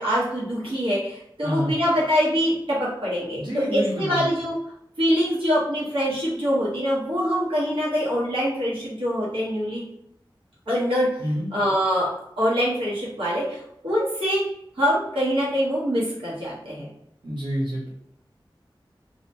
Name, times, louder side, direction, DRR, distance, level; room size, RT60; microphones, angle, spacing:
voice 1, 0.0-4.5 5.0-9.8 10.7-11.1 11.5-12.1 12.4-13.6 13.8-14.4 14.8-16.9, equal, 85° right, -8 dB, 1.1 m, -24 dB
voice 2, 1.4-1.7 3.3-4.2 11.2-11.5 17.2-17.9, equal, 60° right, -9 dB, 1.0 m, -27 dB
2.9 x 2.1 x 2.8 m, 0.74 s
wide cardioid pair, 55°, 9 cm